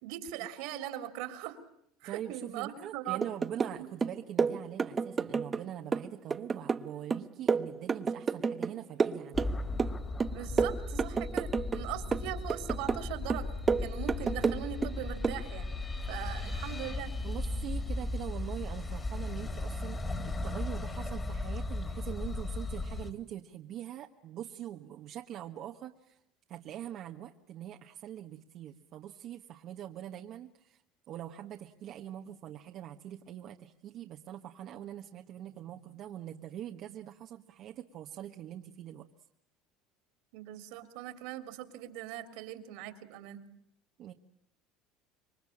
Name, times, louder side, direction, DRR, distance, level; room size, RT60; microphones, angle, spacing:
voice 1, 0.0-1.6 2.0-3.2 3.8-3.9 10.3-13.5 13.8-15.7 16.1-17.1 40.3-43.4, right 12 dB, 75° right, 10 dB, 3.3 m, -40 dB
voice 2, 2.0-9.5 17.2-26.2 26.5-30.8 31.1-39.1 44.0-44.1, right 11 dB, 50° right, 3 dB, 1.4 m, -43 dB
sound 1, 3.2-3.8 4.0-5.6 5.9-8.7 9.0-9.9 10.2-11.8 12.1-13.0 13.3-14.9 15.2-15.4, right 5 dB, 25° right, 1.0 m, -30 dB
sound 2, 9.3-23.1, left 2 dB, 20° left, 3.0 m, -36 dB
27.0 x 23.5 x 8.7 m, 0.72 s
supercardioid pair, 130°, 0 cm